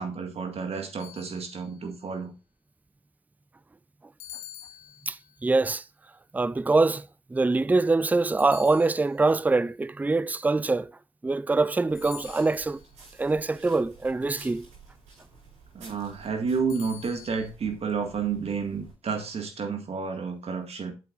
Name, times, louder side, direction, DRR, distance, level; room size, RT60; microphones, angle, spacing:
voice 1, 0.0-2.3 15.7-20.9, right 5 dB, 55° right, 1.9 m, -31 dB
sound 1, 1.0-1.9 4.2-5.4 8.4-9.4 11.9-12.9 16.7-17.5, left 11 dB, 85° left, 0.9 m, -46 dB
voice 2, 5.1-5.8 6.3-10.9 11.2-12.8 13.2-14.7, right 3 dB, 15° right, 0.4 m, -24 dB
sound 2, 11.9-18.9, right 4 dB, 85° right, 5.2 m, -52 dB
8.3 x 7.6 x 2.5 m
hypercardioid pair, 45°, 12 cm